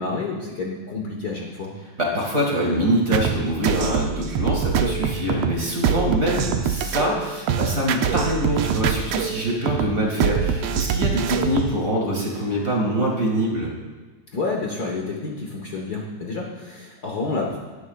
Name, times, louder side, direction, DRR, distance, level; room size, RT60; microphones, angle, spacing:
voice 1, 0.0-1.7 14.3-17.6, left 3 dB, 80° left, -1 dB, 0.8 m, -29 dB
voice 2, 2.0-13.7, right 1 dB, 30° right, -2 dB, 1.9 m, -24 dB
sound 1, 3.1-11.8, right 7 dB, 80° right, 1.4 m, -24 dB
18.0 x 9.8 x 2.4 m, 1.4 s
omnidirectional pair, 3.5 m